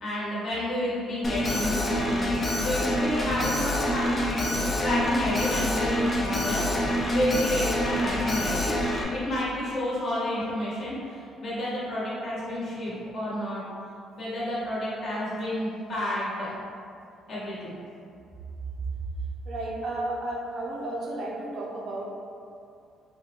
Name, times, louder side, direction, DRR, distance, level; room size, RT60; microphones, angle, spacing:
voice 1, 0.0-4.4 4.8-8.8 9.1-13.6 14.2-16.6 17.3-17.7, left 1 dB, 45° left, -9 dB, 1.2 m, -30 dB
Alarm, 1.2-9.0, left 1 dB, 25° left, 0.4 m, -26 dB
voice 2, 19.5-22.0, right 2 dB, 55° right, -3 dB, 0.5 m, -33 dB
4.0 x 2.1 x 2.9 m, 2.5 s
cardioid pair, 140°, 0 cm